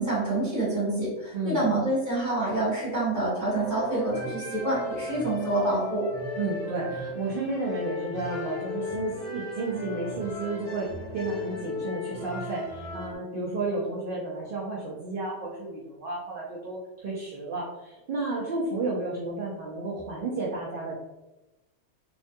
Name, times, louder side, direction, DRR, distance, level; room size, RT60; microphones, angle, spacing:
voice 1, 0.0-6.1, right 2 dB, 15° right, -8 dB, 1.2 m, -27 dB
voice 2, 1.3-1.8 6.4-10.9 11.1-20.9, right 3 dB, 60° right, -4 dB, 0.6 m, -32 dB
sound 1, 3.5-13.2, left 2 dB, 65° left, 0.8 m, -36 dB
2.5 x 2.2 x 2.5 m, 1.0 s
omnidirectional pair, 1.2 m